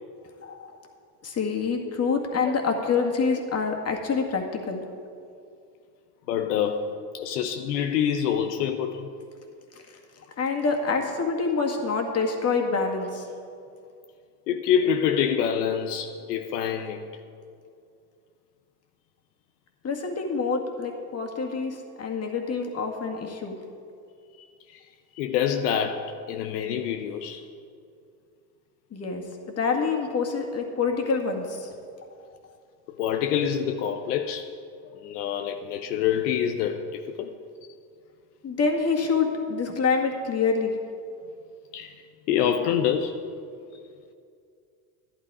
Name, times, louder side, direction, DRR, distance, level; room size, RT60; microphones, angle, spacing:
voice 1, 0.4-0.7 1.2-4.8 10.4-13.3 19.8-23.6 28.9-29.3 29.6-31.7 38.4-40.7, left 4 dB, 35° left, 2 dB, 2.0 m, -26 dB
voice 2, 6.3-6.9 7.1-9.1 14.5-17.0 24.7-24.8 25.2-27.4 33.0-34.5 34.9-37.3 41.7-41.9 42.3-43.2, left 8 dB, 80° left, 6 dB, 0.8 m, -26 dB
11.5 x 11.0 x 4.8 m, 2.4 s
supercardioid pair, 95°, 45 cm